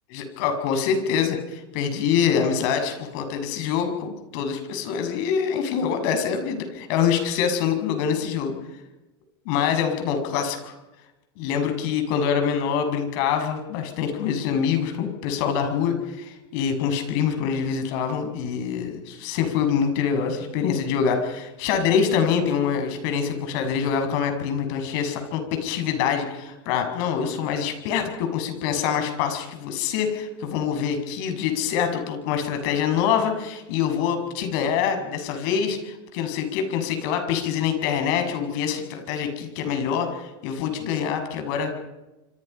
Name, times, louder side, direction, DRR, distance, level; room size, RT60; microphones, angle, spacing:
voice 1, 0.1-8.5 9.4-10.7 11.4-41.7, left 7 dB, 60° left, 6 dB, 6.6 m, -25 dB
27.0 x 25.5 x 5.6 m, 1.0 s
supercardioid pair, 125°, 13 cm